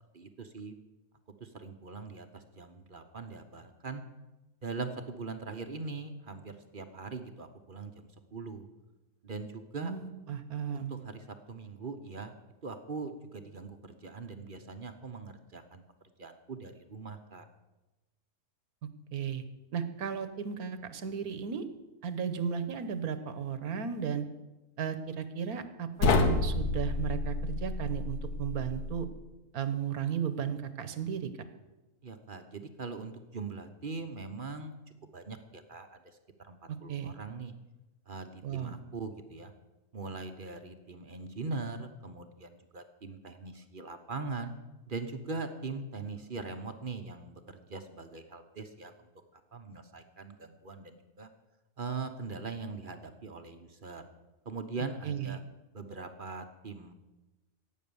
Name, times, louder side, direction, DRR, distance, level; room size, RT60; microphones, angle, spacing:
voice 1, 0.1-0.7 1.4-4.0 4.6-8.7 9.2-9.9 10.7-12.3 12.6-15.8 16.2-17.5 32.0-34.8 35.1-36.0 36.4-37.5 38.1-39.5 39.9-44.5 44.9-51.3 51.8-54.0 54.4-55.4 55.7-56.9, right 4 dB, 40° right, 7 dB, 1.0 m, -41 dB
voice 2, 9.8-11.0 19.1-19.4 19.7-21.7 22.0-24.2 24.8-29.1 29.5-31.3 36.7-37.1 38.4-38.8 55.0-55.4, right 7 dB, 70° right, 11 dB, 1.5 m, -35 dB
sound 1, 26.0-29.1, left 3 dB, 85° left, 1.7 m, -29 dB
16.5 x 8.8 x 7.0 m, 1.0 s
omnidirectional pair, 1.6 m